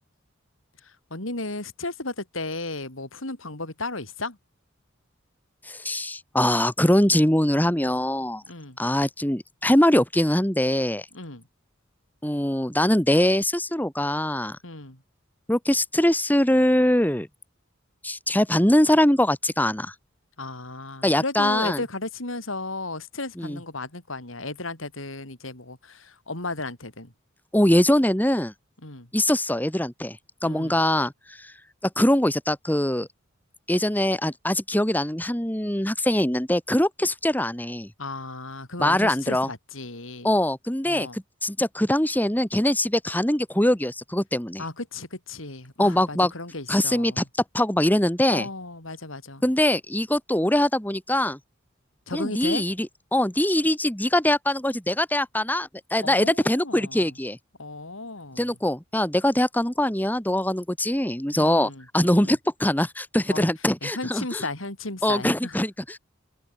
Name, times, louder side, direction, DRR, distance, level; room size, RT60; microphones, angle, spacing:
voice 1, 0.8-4.4 8.5-8.8 11.1-11.4 14.6-15.0 20.4-27.1 28.8-29.1 30.4-30.8 38.0-40.3 40.8-41.2 44.6-47.2 48.3-49.4 52.1-52.6 56.0-57.1 57.6-58.5 61.4-62.3 63.3-63.5 63.8-65.6, left 2 dB, 80° left, 4.9 m, -35 dB
voice 2, 5.7-8.4 8.8-11.0 12.2-14.6 15.5-17.3 18.0-19.9 21.0-21.8 23.4-23.6 27.5-28.5 29.1-30.2 30.4-31.1 31.4-31.5 32.0-33.1 33.7-37.9 38.8-39.5 40.2-44.6 45.8-46.3 46.7-47.2 47.5-48.5 49.4-51.4 52.1-57.4 58.4-64.4 65.0-66.0, left 1 dB, 10° left, 2.2 m, -22 dB
head